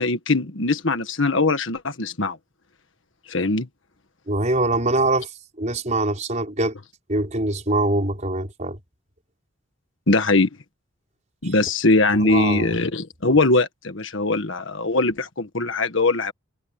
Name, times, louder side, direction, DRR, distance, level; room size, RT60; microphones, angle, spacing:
voice 1, 0.0-2.4 3.3-3.7 10.1-10.5 11.4-16.3, left 2 dB, 60° left, 1.6 m, -21 dB
voice 2, 4.3-6.7 7.1-8.8 11.4-11.5 12.1-12.7, right 2 dB, 35° right, 5.1 m, -23 dB
head